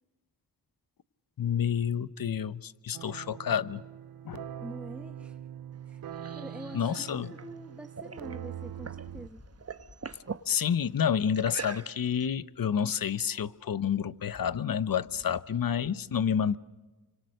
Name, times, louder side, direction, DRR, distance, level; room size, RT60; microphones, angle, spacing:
voice 1, 1.4-3.8 4.2-4.5 6.7-7.3 10.5-16.6, left 8 dB, 60° left, 1.0 m, -29 dB
sound 1, 2.9-9.3, right 10 dB, 65° right, 0.7 m, -42 dB
voice 2, 4.6-5.4 5.9-6.0 6.3-9.4, equal, 5° right, 0.9 m, -45 dB
sound 2, 5.7-9.1 9.4-10.5 11.3-12.2, right 5 dB, 40° right, 1.2 m, -43 dB
sound 3, 8.7-15.9, left 2 dB, 35° left, 3.0 m, -57 dB
28.5 x 25.0 x 6.6 m
cardioid pair, 45°, 39 cm